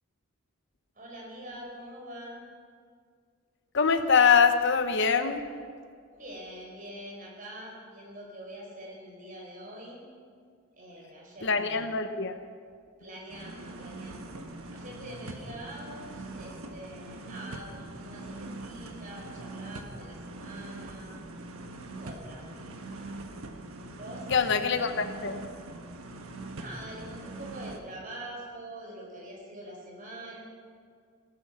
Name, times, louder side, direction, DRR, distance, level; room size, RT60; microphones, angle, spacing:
voice 1, 0.9-2.4 6.1-10.0 10.8-11.9 13.0-14.3 14.7-21.2 22.0-22.7 23.9-24.5 24.8-24.9 26.5-30.4, right 1 dB, 40° right, -2 dB, 4.5 m, -44 dB
voice 2, 3.7-5.4 11.4-12.4 24.3-25.4, left 6 dB, 55° left, 9 dB, 0.8 m, -24 dB
sound 1, 13.3-27.8, right 2 dB, 90° right, 1.4 m, -42 dB
17.5 x 12.5 x 5.6 m, 2.1 s
head